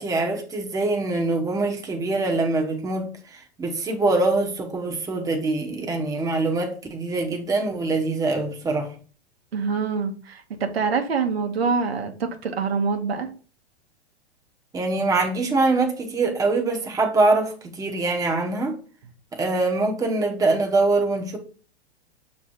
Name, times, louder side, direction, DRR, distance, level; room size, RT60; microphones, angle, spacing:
voice 1, 0.0-8.9 14.7-18.7 19.3-21.4, right 3 dB, 10° right, 1.0 m, -24 dB
voice 2, 9.5-13.3, right 5 dB, 65° right, 1.1 m, -25 dB
7.1 x 3.2 x 4.4 m
figure-of-eight pair, 105°, 32 cm